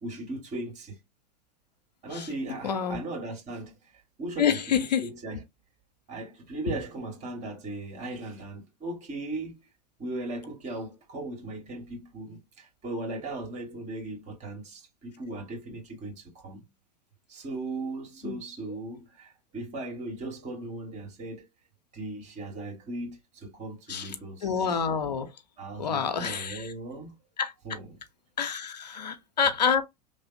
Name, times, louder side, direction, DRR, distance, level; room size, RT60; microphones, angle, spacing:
voice 1, 0.0-1.0 2.0-3.7 4.2-5.4 6.1-9.6 10.0-16.6 17.3-21.4 21.9-24.7 25.6-27.2 27.6-27.9, right 2 dB, 35° right, 1.9 m, -37 dB
voice 2, 2.6-3.0 4.4-5.1 6.7-6.8 18.2-18.4 23.9-24.1 24.4-25.3 25.8-26.7 27.4-27.5 28.4-29.8, left 7 dB, 90° left, 0.6 m, -27 dB
3.1 x 2.0 x 2.6 m
hypercardioid pair, 100°, 21 cm